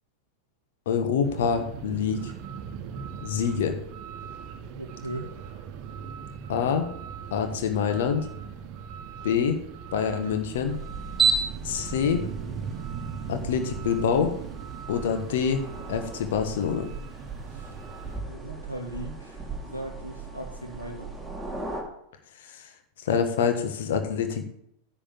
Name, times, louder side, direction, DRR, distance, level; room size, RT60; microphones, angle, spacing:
voice 1, 0.9-2.3 3.2-3.8 6.5-6.9 7.3-8.3 9.2-9.6 9.9-10.7 11.6-12.2 13.3-14.3 14.9-15.6 15.9-16.9 23.0-24.4, left 7 dB, 55° left, 7 dB, 1.3 m, -26 dB
sound 1, 1.2-18.2, right 7 dB, 40° right, 1.1 m, -40 dB
voice 2, 4.8-5.3 17.5-17.7 18.3-21.1, right 1 dB, 90° left, 1 dB, 2.2 m, -38 dB
sound 2, 10.3-21.8, right 4 dB, ahead, 2.5 m, -34 dB
10.0 x 4.6 x 7.5 m, 0.73 s
figure-of-eight pair, 90°, 0 cm